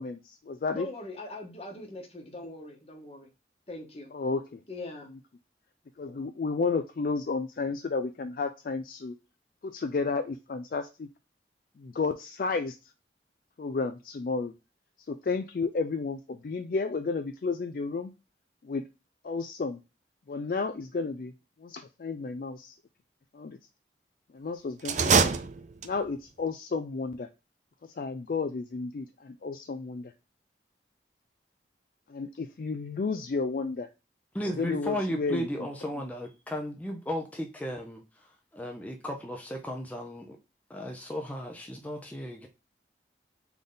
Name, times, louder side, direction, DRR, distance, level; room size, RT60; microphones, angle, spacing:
voice 1, 0.0-0.9 4.1-4.6 5.1-5.2 6.0-9.2 9.6-11.1 11.8-12.9 13.6-14.5 15.1-18.1 18.6-18.9 19.2-19.8 20.3-21.3 21.6-22.7 23.3-23.6 24.3-25.4 25.8-27.3 27.8-30.1 32.1-33.9 34.6-35.7, left 4 dB, 50° left, 8 dB, 0.3 m, -32 dB
voice 2, 0.7-3.3 3.7-4.1 4.7-5.1, left 2 dB, 35° left, 3 dB, 1.1 m, -41 dB
sound 1, 24.8-26.2, right 5 dB, 40° right, 0.4 m, -25 dB
voice 3, 34.3-40.4 40.7-42.5, equal, 10° left, 1 dB, 0.6 m, -35 dB
3.9 x 3.5 x 3.8 m, 0.28 s
head